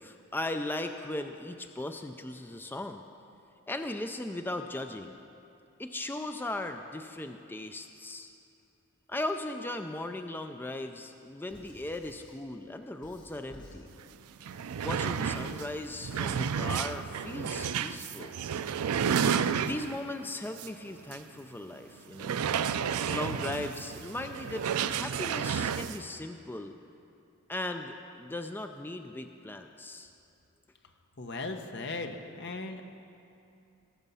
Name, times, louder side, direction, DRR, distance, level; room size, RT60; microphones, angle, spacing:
voice 1, 0.0-3.0 3.7-5.2 5.8-8.3 9.1-13.9 14.8-18.4 19.6-22.4 23.1-26.8 27.5-30.1, left 1 dB, 10° left, 6 dB, 0.3 m, -38 dB
Squeak / Writing, 11.5-12.4 13.0-13.9 14.4-16.6, equal, 35° left, 2.6 m, -53 dB
sound 1, 14.0-14.1 14.4-20.1 20.6-20.7 21.1-21.2 22.1-26.0, right 7 dB, 85° right, 0.4 m, -31 dB
voice 2, 31.2-32.8, left 3 dB, 50° left, 5 dB, 0.9 m, -37 dB
18.5 x 7.2 x 5.5 m, 2.7 s
head